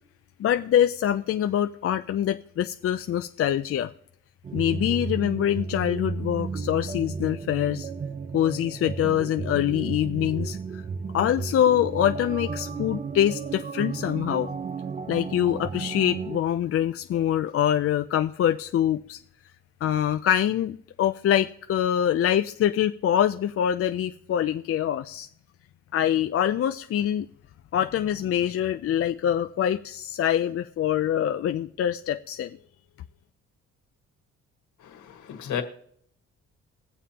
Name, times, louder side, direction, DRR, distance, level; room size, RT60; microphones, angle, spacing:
voice 1, 0.4-3.9 4.5-7.9 8.3-10.8 11.1-14.5 15.1-19.2 19.8-25.3 25.9-27.3 27.7-32.6, left 10 dB, 50° left, 8 dB, 0.5 m, -24 dB
sound 1, 4.4-16.4, right 5 dB, 25° right, 0.5 m, -33 dB
voice 2, 34.8-35.6, left 9 dB, 75° left, 5 dB, 1.6 m, -33 dB
21.0 x 7.2 x 2.9 m, 0.65 s
cardioid pair, 90°, 30 cm